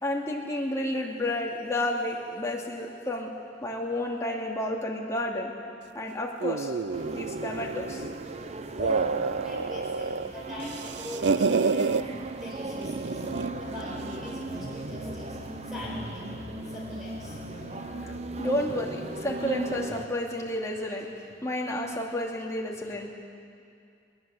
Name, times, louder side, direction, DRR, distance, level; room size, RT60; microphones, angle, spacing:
voice 1, 0.0-3.3 3.6-5.5 5.9-6.7 7.0-8.0 18.4-21.1 21.4-23.1, left 1 dB, 15° left, -2 dB, 2.6 m, -31 dB
sound 1, 6.4-8.2 8.6-10.3 10.6-12.0 12.8-13.6, right 4 dB, 65° right, 0.5 m, -28 dB
sound 2, 6.9-20.1, right 2 dB, 35° right, 0.8 m, -38 dB
voice 2, 8.3-16.4 16.7-17.4, left 1 dB, ahead, -5 dB, 5.0 m, -42 dB
Musical instrument, 13.2-18.4, left 2 dB, 85° left, 1.6 m, -45 dB
22.0 x 20.0 x 7.8 m, 2.4 s
head